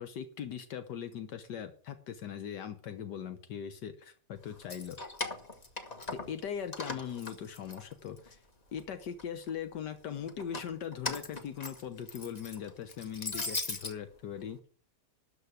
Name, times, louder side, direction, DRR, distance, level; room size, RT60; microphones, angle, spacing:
voice 1, 0.0-5.0 6.1-8.4 8.7-14.6, left 8 dB, 80° left, 9 dB, 1.6 m, -40 dB
Keys jangling, 4.5-6.4 6.7-8.3 8.8-9.5 10.3-13.9, left 3 dB, 25° left, 1.2 m, -39 dB
12.5 x 5.4 x 8.1 m, 0.44 s
omnidirectional pair, 1.9 m